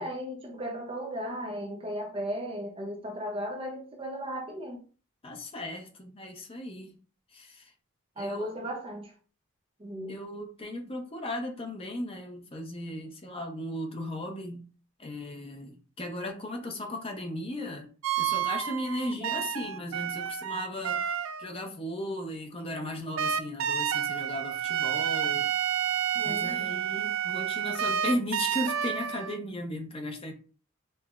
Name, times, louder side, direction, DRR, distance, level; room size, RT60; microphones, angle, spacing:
voice 1, 0.0-4.8 8.2-9.1 9.8-10.1 26.1-26.7, equal, 25° right, 0.6 m, -36 dB
voice 2, 5.2-7.0 7.3-7.7 8.2-8.7 10.1-14.7 15.0-17.9 18.2-25.5 26.2-30.3, left 1 dB, 25° left, 0.5 m, -36 dB
sound 1, 18.0-21.5 23.2-29.4, right 9 dB, 70° right, 0.3 m, -30 dB
5.3 x 2.0 x 2.3 m
head